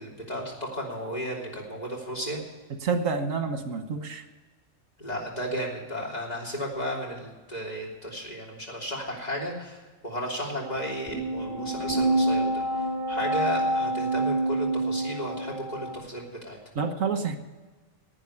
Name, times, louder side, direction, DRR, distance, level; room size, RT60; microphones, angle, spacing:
voice 1, 0.0-2.4 5.0-12.6 13.1-16.6, equal, 30° left, -2 dB, 3.4 m, -34 dB
voice 2, 2.8-4.2 16.7-17.4, right 5 dB, 85° right, 8 dB, 1.5 m, -28 dB
sound 1, 10.6-15.9, right 1 dB, 15° right, 2.8 m, -27 dB
11.0 x 9.2 x 9.8 m, 1.3 s
omnidirectional pair, 1.3 m